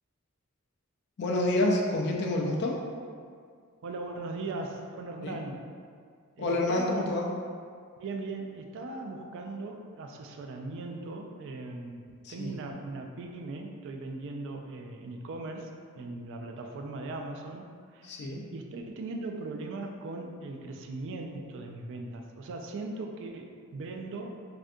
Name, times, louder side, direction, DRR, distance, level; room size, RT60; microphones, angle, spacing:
voice 1, 1.2-2.8 5.2-5.4 6.4-7.3 12.2-12.5 18.0-18.4, left 1 dB, 50° left, -1 dB, 0.4 m, -28 dB
voice 2, 3.8-5.6 6.4-7.0 8.0-18.2 18.5-24.4, right 2 dB, 60° right, 3 dB, 0.3 m, -39 dB
3.2 x 2.5 x 2.6 m, 2.1 s
head